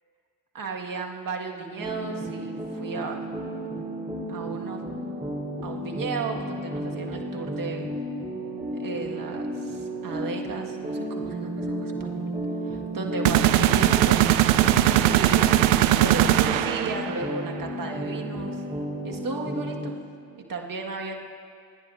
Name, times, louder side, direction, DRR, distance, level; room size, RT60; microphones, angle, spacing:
voice 1, 0.5-3.3 4.3-4.8 5.6-7.9 8.8-12.4 12.6-14.7 15.1-18.6 19.0-20.0 20.3-21.2, right 4 dB, 45° right, 1 dB, 1.7 m, -34 dB
sound 1, 1.8-19.8, right 1 dB, 15° right, 3.7 m, -33 dB
sound 2, 13.3-17.2, right 13 dB, 80° right, 0.6 m, -20 dB
29.0 x 10.0 x 2.6 m, 2.2 s
hypercardioid pair, 45°, 44 cm